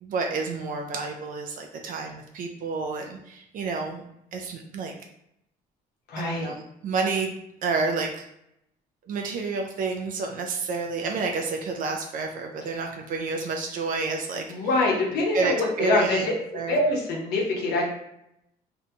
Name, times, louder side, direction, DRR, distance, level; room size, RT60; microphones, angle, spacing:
voice 1, 0.0-4.0 4.3-4.9 6.2-7.3 7.6-8.2 9.1-14.5 15.3-16.3 16.5-16.8, right 4 dB, 55° right, 2 dB, 0.4 m, -29 dB
voice 2, 6.1-6.5 14.5-16.4 16.7-17.8, left 2 dB, 75° left, -1 dB, 0.8 m, -24 dB
2.6 x 2.2 x 2.7 m, 0.80 s
cardioid pair, 110°, 17 cm